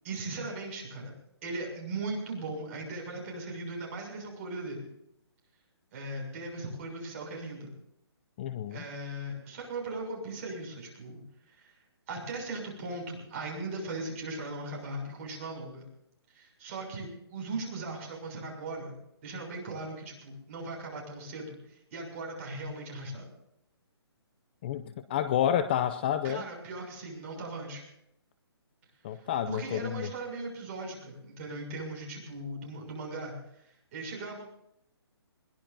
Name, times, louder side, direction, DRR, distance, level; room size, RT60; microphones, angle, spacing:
voice 1, 0.0-1.1 1.4-4.8 5.9-7.7 8.7-11.2 11.5-11.7 12.1-15.9 16.3-18.9 19.2-23.3 26.2-27.8 29.1-34.4, right 2 dB, 30° right, 0 dB, 6.7 m, -38 dB
voice 2, 8.4-8.8 24.6-26.4 29.0-30.1, left 10 dB, 25° left, 13 dB, 0.5 m, -29 dB
21.5 x 19.5 x 2.7 m, 0.77 s
hypercardioid pair, 165°, 14 cm